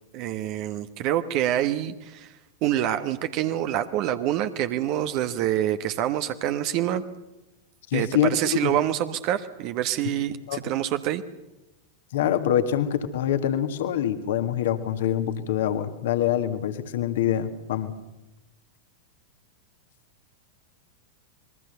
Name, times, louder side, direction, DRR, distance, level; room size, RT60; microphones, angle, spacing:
voice 1, 0.1-2.3 2.6-7.0 7.9-11.2, right 12 dB, 40° right, 10 dB, 1.2 m, -26 dB
voice 2, 7.9-8.7 10.1-10.2 10.5-10.6 12.1-17.9, left 10 dB, 55° left, 9 dB, 1.9 m, -25 dB
27.0 x 21.5 x 6.8 m, 0.99 s
figure-of-eight pair, 90°, 0 cm